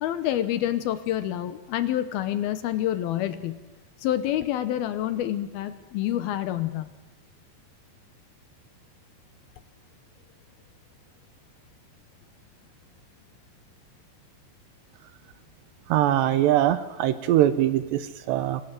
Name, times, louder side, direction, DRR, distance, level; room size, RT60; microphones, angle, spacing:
voice 1, 0.0-3.6 4.0-6.9, left 12 dB, 75° left, 12 dB, 2.6 m, -27 dB
voice 2, 15.9-18.6, right 12 dB, 80° right, 13 dB, 3.0 m, -22 dB
26.5 x 19.5 x 7.7 m, 1.2 s
omnidirectional pair, 5.1 m